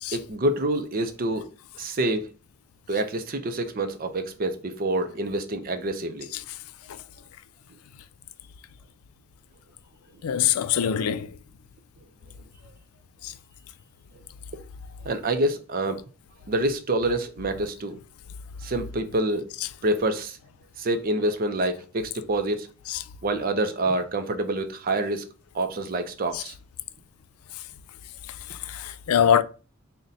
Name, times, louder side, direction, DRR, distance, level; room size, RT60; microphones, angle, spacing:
voice 1, 0.1-1.5 1.8-2.3 2.9-6.3 15.0-16.0 16.5-18.0 18.6-19.5 19.8-20.4 20.8-22.7 23.2-25.2 25.5-26.5, right 1 dB, 40° right, 0.5 m, -27 dB
voice 2, 10.2-11.4 13.2-13.3 22.9-23.0 26.3-26.4 28.5-29.4, left 9 dB, 85° left, 0.3 m, -24 dB
3.9 x 2.2 x 3.9 m
head